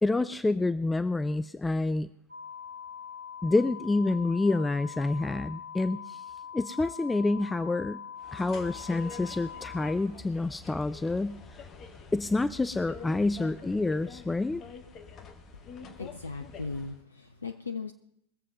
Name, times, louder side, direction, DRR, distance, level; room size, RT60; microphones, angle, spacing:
voice 1, 0.0-2.1 3.4-6.2 6.5-8.0 8.3-11.4 12.1-14.6, left 2 dB, 10° left, 0.4 m, -28 dB
sound 1, 2.3-9.9, left 8 dB, 70° right, 2.9 m, -43 dB
sound 2, 8.2-17.0, left 5 dB, 30° left, 1.4 m, -46 dB
voice 2, 15.6-17.9, left 4 dB, 75° left, 0.7 m, -38 dB
21.5 x 7.6 x 5.3 m
figure-of-eight pair, 90°, 0 cm